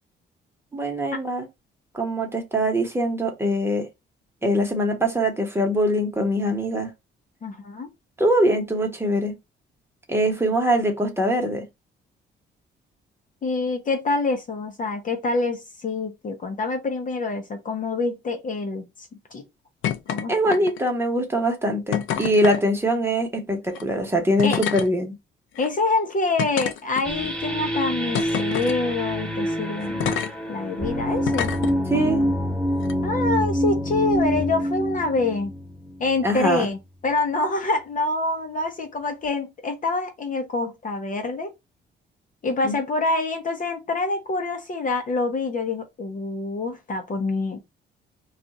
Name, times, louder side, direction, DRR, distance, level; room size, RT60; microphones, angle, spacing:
voice 1, 0.7-1.5 1.9-3.9 4.4-6.9 8.2-9.3 10.1-11.6 20.3-25.1 31.9-32.2 36.2-36.7 42.6-42.8, equal, 10° right, 1.2 m, -23 dB
voice 2, 7.4-7.9 13.4-19.4 20.1-20.5 24.4-24.6 25.6-30.2 30.5-31.5 31.9-32.3 33.0-35.5 36.0-41.5 42.4-47.6, left 3 dB, 40° left, 0.8 m, -26 dB
sound 1, 19.8-20.2 20.5-21.0 21.9-22.6 23.7-23.8 24.4-24.9 25.6-25.7 26.4-27.3 28.1-28.8 30.0-30.3 31.2-31.7 32.8-32.9, left 9 dB, 75° left, 0.6 m, -27 dB
sound 2, 27.0-36.4, equal, 5° left, 1.3 m, -26 dB
2.5 x 2.4 x 4.1 m
cardioid pair, 90°, 20 cm